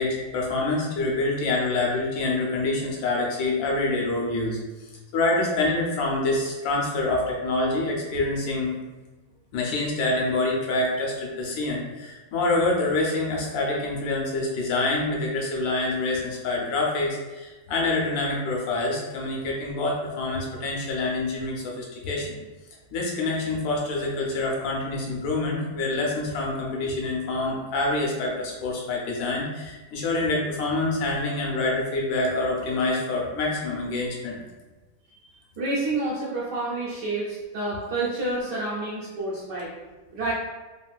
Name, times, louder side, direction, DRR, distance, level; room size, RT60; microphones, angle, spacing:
voice 1, 0.0-8.8 9.5-22.4 22.9-34.4, left 2 dB, 75° left, -2 dB, 1.4 m, -26 dB
voice 2, 35.2-39.7 40.1-40.3, right 2 dB, 70° right, -8 dB, 1.1 m, -29 dB
3.5 x 2.5 x 2.3 m, 1.2 s
omnidirectional pair, 2.2 m